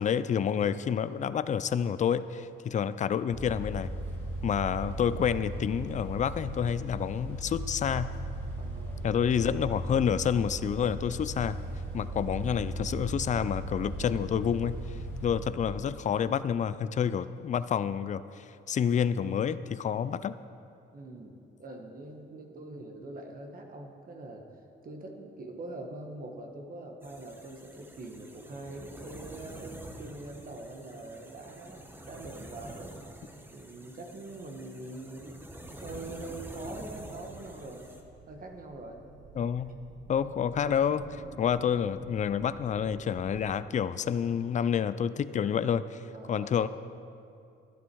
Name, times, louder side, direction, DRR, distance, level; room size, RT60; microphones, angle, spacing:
voice 1, 0.0-3.9 4.4-8.1 9.0-11.6 11.9-20.4 39.4-39.7 40.1-46.7, left 8 dB, 40° left, 14 dB, 0.4 m, -29 dB
sound 1, 3.3-15.4, right 1 dB, 10° left, 2.0 m, -37 dB
voice 2, 8.6-9.1 12.0-12.1 20.9-24.4 24.8-33.0 33.5-35.4 35.8-37.9 38.3-39.0 46.1-46.5, right 2 dB, 45° right, 2 dB, 1.5 m, -43 dB
sound 2, 27.0-38.0, right 1 dB, 10° right, 1.2 m, -47 dB
sound 3, 37.4-43.5, right 4 dB, 65° right, 1.2 m, -51 dB
11.5 x 10.5 x 4.7 m, 2.6 s
cardioid pair, 90°, 20 cm